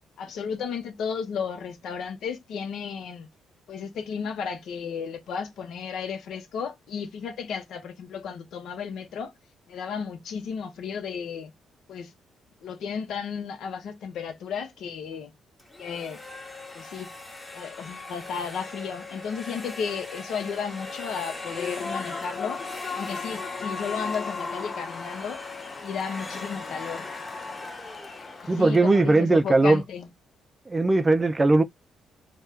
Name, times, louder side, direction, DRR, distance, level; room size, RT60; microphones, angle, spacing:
voice 1, 0.2-3.3 3.7-9.3 9.7-11.5 11.9-12.1 12.6-15.3 15.8-16.2 16.7-17.1 17.5-22.6 22.9-25.4 25.8-27.1 28.4-30.1, left 6 dB, 75° left, 0.8 m, -33 dB
sound 1, 15.6-29.4, left 3 dB, 15° left, 1.0 m, -40 dB
Human voice / Cheering / Applause, 21.3-29.0, left 5 dB, 35° left, 0.6 m, -37 dB
voice 2, 28.5-29.8 30.7-31.6, right 2 dB, 20° right, 0.4 m, -19 dB
2.7 x 2.2 x 3.4 m
cardioid pair, 90°, 0 cm